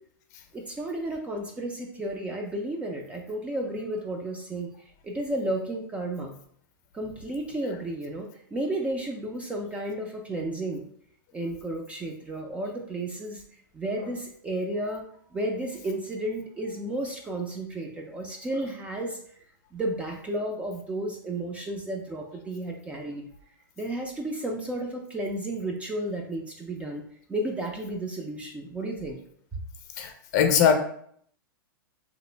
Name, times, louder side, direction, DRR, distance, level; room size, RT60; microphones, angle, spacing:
voice 1, 0.5-6.4 6.9-10.9 11.3-13.4 13.7-15.0 15.3-19.2 19.7-23.2 23.8-27.0 27.3-29.2, right 1 dB, 10° right, 1 dB, 0.3 m, -32 dB
voice 2, 30.0-30.7, left 8 dB, 50° left, 5 dB, 0.6 m, -22 dB
2.9 x 2.4 x 3.2 m, 0.64 s
hypercardioid pair, 135°, 12 cm